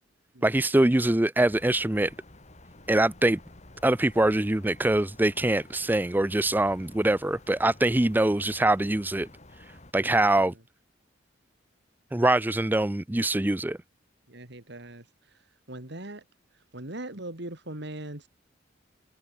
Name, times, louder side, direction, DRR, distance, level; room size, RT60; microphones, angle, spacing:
voice 1, 0.4-2.1 2.9-3.4 3.8-9.3 9.9-10.5 12.1-13.8, right 1 dB, 10° right, 0.5 m, -23 dB
sound 1, 1.4-9.9, left 1 dB, 35° left, 3.3 m, -51 dB
voice 2, 14.3-15.0 15.7-16.2 16.7-18.3, right 1 dB, 60° right, 2.9 m, -39 dB
head